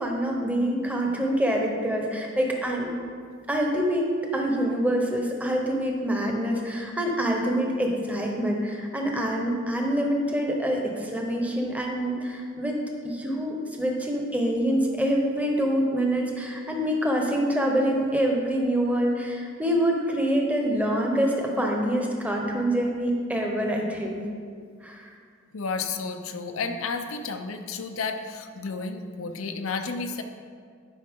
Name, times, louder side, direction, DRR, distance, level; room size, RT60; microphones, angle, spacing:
voice 1, 0.0-2.9 3.5-12.8 13.0-24.2 24.8-25.1, equal, 5° right, 0 dB, 1.0 m, -26 dB
voice 2, 25.5-30.2, left 4 dB, 70° left, 6 dB, 0.6 m, -32 dB
11.5 x 5.4 x 3.7 m, 2.1 s
head